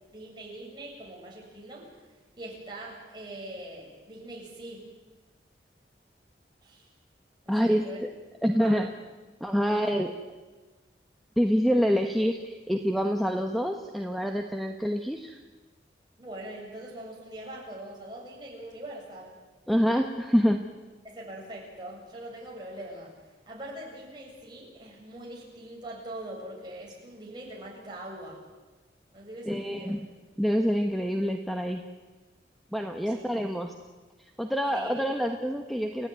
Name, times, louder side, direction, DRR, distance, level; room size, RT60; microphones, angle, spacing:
voice 1, 0.1-1.9 2.4-4.8 6.6-6.9 7.4-8.0 8.4-8.9 9.6-9.9 16.2-19.4 21.0-23.1 23.5-28.4 29.1-30.0 33.0-33.2 34.7-34.9, right 1 dB, 25° right, -3 dB, 7.9 m, -42 dB
voice 2, 7.5-7.8 8.4-8.9 9.4-10.1 11.4-15.4 19.7-20.6 29.5-30.0 30.4-31.8 32.7-33.7 34.4-36.1, equal, ahead, 4 dB, 1.3 m, -26 dB
29.5 x 16.0 x 9.6 m, 1.3 s
head